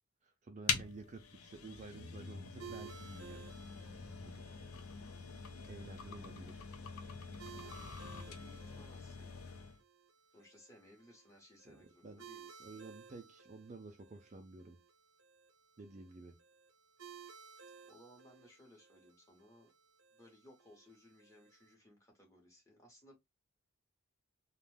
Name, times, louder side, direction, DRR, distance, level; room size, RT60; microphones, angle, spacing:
voice 1, 0.2-3.4 4.2-4.5 5.6-6.6 11.6-12.2 12.6-14.8 15.8-16.3, right 3 dB, 30° right, 0.4 m, -51 dB
sound 1, 0.7-9.8, left 6 dB, 75° left, 0.5 m, -44 dB
sound 2, 2.6-21.7, right 6 dB, 70° right, 0.7 m, -58 dB
voice 2, 7.5-9.5 10.3-12.7 17.9-19.7 20.1-23.1, left 1 dB, 15° left, 0.9 m, -62 dB
2.5 x 2.1 x 3.2 m
head